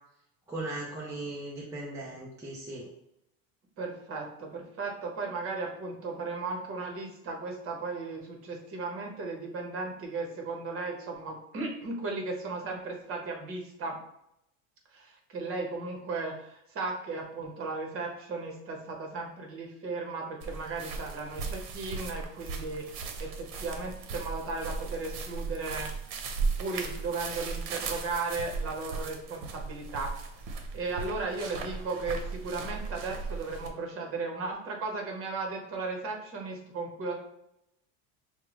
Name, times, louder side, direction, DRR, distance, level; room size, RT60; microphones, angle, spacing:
voice 1, 0.5-2.9, right 2 dB, 5° right, -5 dB, 0.4 m, -38 dB
voice 2, 3.8-14.0 14.9-25.9 26.6-30.1 30.7-37.1, right 3 dB, 30° right, 1 dB, 1.1 m, -36 dB
sound 1, 20.4-33.7, right 4 dB, 65° right, 0.9 m, -37 dB
5.9 x 2.3 x 3.0 m, 0.79 s
supercardioid pair, 145°, 43 cm